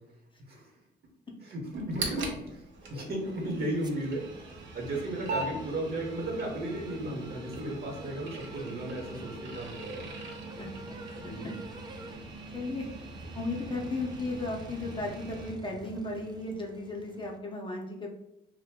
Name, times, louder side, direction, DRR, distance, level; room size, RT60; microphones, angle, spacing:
voice 1, 1.4-10.1 11.2-11.5, right 1 dB, 50° right, 0 dB, 1.1 m, -35 dB
sound 1, 1.7-15.5, right 2 dB, 70° right, 0.7 m, -42 dB
sound 2, 2.8-17.4, right 2 dB, 20° right, 0.3 m, -48 dB
voice 2, 10.6-11.0 11.4-11.5 12.5-12.9 13.3-18.1, left 2 dB, 25° left, 0 dB, 0.6 m, -35 dB
2.5 x 2.2 x 3.5 m, 0.89 s
cardioid pair, 90°, 20 cm